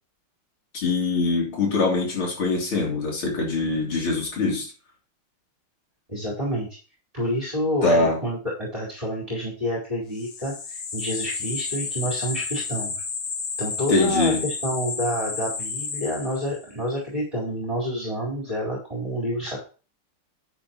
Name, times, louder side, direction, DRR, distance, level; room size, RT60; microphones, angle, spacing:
voice 1, 0.7-4.7 7.8-8.2 13.9-14.4, left 3 dB, 70° left, 4.0 m, -23 dB
voice 2, 6.1-6.7 7.1-12.9 13.6-19.6, equal, 15° right, 4.4 m, -28 dB
sound 1, 10.2-16.7, left 5 dB, 45° left, 1.0 m, -31 dB
11.5 x 8.9 x 3.0 m
omnidirectional pair, 2.4 m